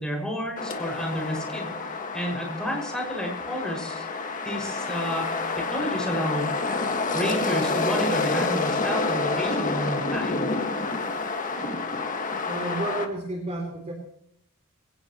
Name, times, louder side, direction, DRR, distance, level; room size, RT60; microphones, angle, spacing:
voice 1, 0.0-1.7 2.1-4.1 4.4-6.8 7.1-10.5, equal, 5° left, -1 dB, 6.0 m, -31 dB
sound 1, 0.6-13.1, left 3 dB, 40° left, 1.8 m, -28 dB
voice 2, 12.4-13.9, right 1 dB, 30° right, 2 dB, 3.2 m, -31 dB
22.5 x 17.0 x 3.1 m, 0.71 s
head